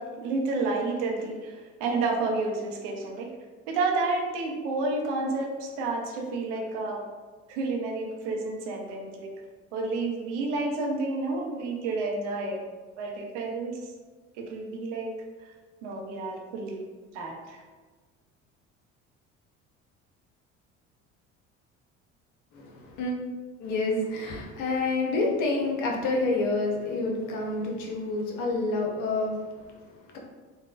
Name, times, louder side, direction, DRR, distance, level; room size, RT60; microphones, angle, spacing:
voice 1, 0.0-3.3 3.7-7.0 7.5-9.3 9.7-12.6 13.0-13.9 14.4-15.1 15.8-16.8 17.1-17.6, right 3 dB, 65° right, 1 dB, 0.6 m, -30 dB
voice 2, 22.5-23.1 23.6-30.2, left 2 dB, 50° left, 0 dB, 0.7 m, -28 dB
3.3 x 2.2 x 2.3 m, 1.4 s
figure-of-eight pair, 60°, 38 cm